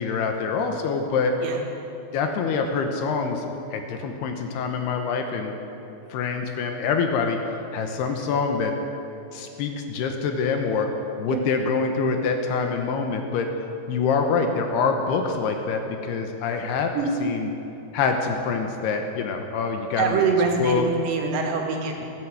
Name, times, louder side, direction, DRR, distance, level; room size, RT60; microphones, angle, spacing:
voice 1, 0.0-1.4 2.1-5.6 6.1-7.4 7.7-8.7 9.3-10.9 11.2-13.5 13.9-16.9 17.2-17.5 17.9-20.2 20.6-20.8, left 5 dB, 75° left, 4 dB, 2.9 m, -25 dB
voice 2, 20.0-22.1, right 5 dB, 80° right, 1 dB, 3.9 m, -24 dB
16.0 x 11.0 x 7.9 m, 2.9 s
omnidirectional pair, 5.1 m